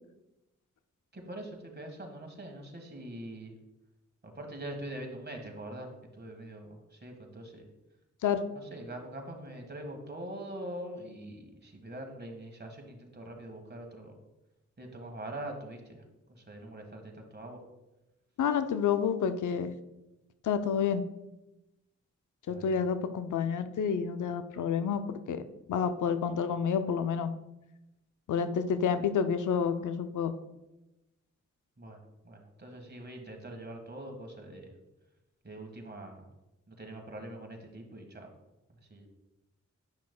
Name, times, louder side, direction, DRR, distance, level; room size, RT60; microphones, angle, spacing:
voice 1, 1.1-3.5 4.2-7.6 8.5-14.2 14.8-16.0 16.3-17.6 22.5-22.9 31.8-34.7 35.4-36.3 36.7-38.3 38.9-39.1, right 1 dB, 35° right, 3 dB, 1.6 m, -43 dB
voice 2, 18.4-19.7 20.4-21.0 22.5-25.4 25.7-27.3 28.3-30.3, left 7 dB, 85° left, 10 dB, 0.5 m, -29 dB
9.6 x 5.9 x 2.3 m, 0.98 s
cardioid pair, 45°, 30 cm